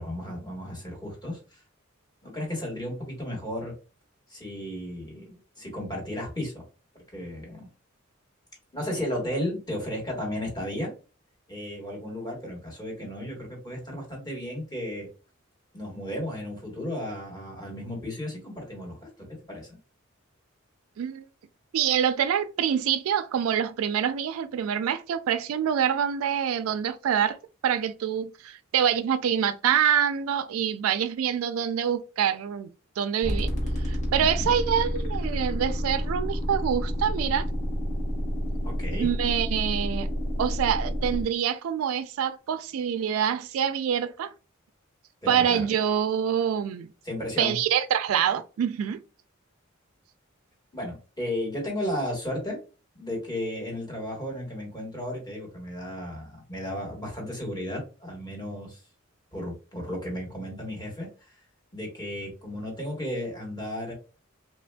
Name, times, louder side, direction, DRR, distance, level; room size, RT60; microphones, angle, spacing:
voice 1, 0.0-1.4 2.2-3.7 4.3-6.6 7.1-7.7 8.7-10.9 11.5-15.1 15.7-19.1 19.5-19.8 34.2-34.5 38.6-39.1 45.2-45.6 47.0-47.6 50.7-52.6 52.9-58.8 59.3-61.1 61.7-63.9, left 1 dB, 20° left, 1.3 m, -34 dB
voice 2, 21.7-27.4 27.6-32.7 33.0-33.5 33.9-37.5 38.9-40.1 40.4-44.3 45.3-46.9 47.4-49.0, right 8 dB, 90° right, 0.3 m, -26 dB
sound 1, 33.2-41.2, equal, 35° left, 1.0 m, -29 dB
3.2 x 2.4 x 2.2 m
head